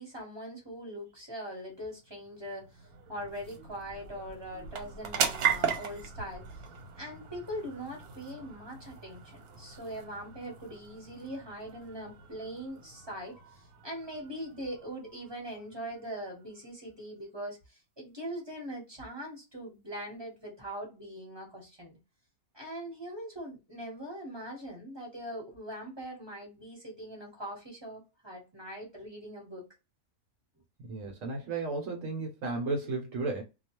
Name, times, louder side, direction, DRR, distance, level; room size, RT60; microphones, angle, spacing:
voice 1, 0.0-6.7 6.9-22.0 22.5-29.7, equal, 20° right, 0.9 m, -42 dB
sound 1, 1.7-16.6, right 7 dB, 85° right, 1.2 m, -38 dB
voice 2, 30.9-33.4, right 3 dB, 65° right, 1.0 m, -33 dB
2.3 x 2.3 x 2.8 m
omnidirectional pair, 1.5 m